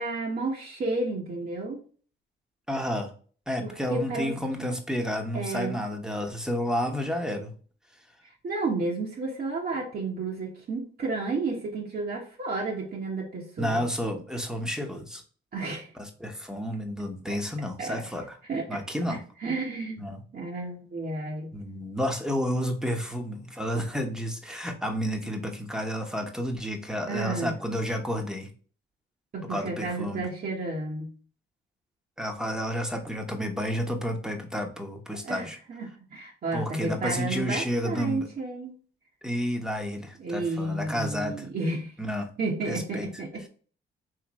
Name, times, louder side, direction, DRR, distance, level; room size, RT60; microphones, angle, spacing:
voice 1, 0.0-1.8 3.6-4.7 5.3-5.8 8.4-13.8 15.5-15.9 17.3-17.4 17.8-18.0 18.5-18.8 19.1-20.1 20.3-21.5 27.1-27.6 29.3-31.1 35.1-38.8 40.2-41.9 42.4-43.5, right 3 dB, 50° right, -1 dB, 1.3 m, -32 dB
voice 2, 2.7-3.1 3.5-7.5 13.6-15.2 16.0-18.3 18.7-19.2 20.0-20.2 21.5-28.5 29.4-30.2 32.2-35.6 36.5-38.3 39.2-41.4 42.0-42.3 42.7-43.1, equal, 5° right, 4 dB, 1.0 m, -31 dB
4.8 x 3.2 x 3.0 m, 0.41 s
cardioid pair, 90°, 20 cm